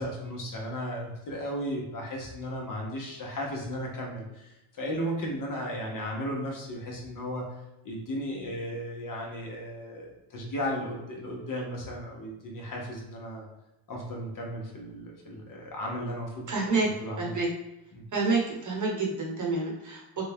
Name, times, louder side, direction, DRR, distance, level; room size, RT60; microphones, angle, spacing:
voice 1, 0.0-7.5 7.8-13.5 13.9-16.7 17.0-17.4 17.9-18.0, equal, 40° left, -1 dB, 1.0 m, -35 dB
voice 2, 16.5-16.9 17.2-17.5 18.1-20.2, right 3 dB, 40° right, -2 dB, 1.1 m, -28 dB
3.5 x 2.2 x 3.5 m, 0.94 s
cardioid pair, 100°, 48 cm